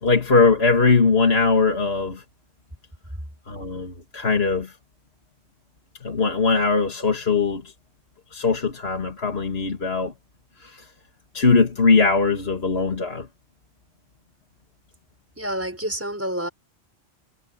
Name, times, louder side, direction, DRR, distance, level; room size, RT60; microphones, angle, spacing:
voice 1, 0.0-2.2 3.5-4.8 6.0-7.7 8.3-10.1 10.6-10.9 11.3-13.3, left 4 dB, 70° left, 2.3 m, -20 dB
voice 2, 15.4-16.5, right 1 dB, 10° right, 5.9 m, -28 dB
omnidirectional pair, 1.1 m